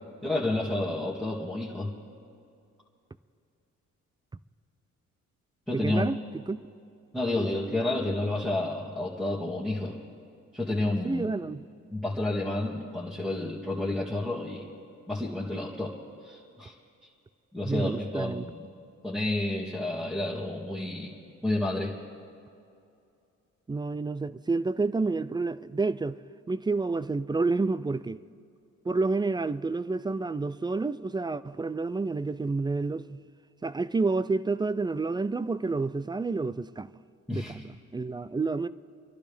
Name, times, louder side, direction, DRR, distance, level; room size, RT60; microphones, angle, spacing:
voice 1, 0.2-2.0 5.7-6.0 7.1-10.0 10.5-11.3 11.9-14.7 15.1-16.0 16.2-16.7 17.0-17.1 17.5-18.7 19.0-21.2 21.4-22.0 37.3-37.5, left 2 dB, 5° left, 2.1 m, -30 dB
voice 2, 5.7-6.2 6.5-6.6 11.0-11.6 17.6-18.5 23.7-26.2 26.5-28.2 28.9-33.2 33.6-36.9 37.3-38.7, right 3 dB, 15° right, 0.3 m, -29 dB
28.5 x 12.0 x 3.5 m
cardioid pair, 90°, 30 cm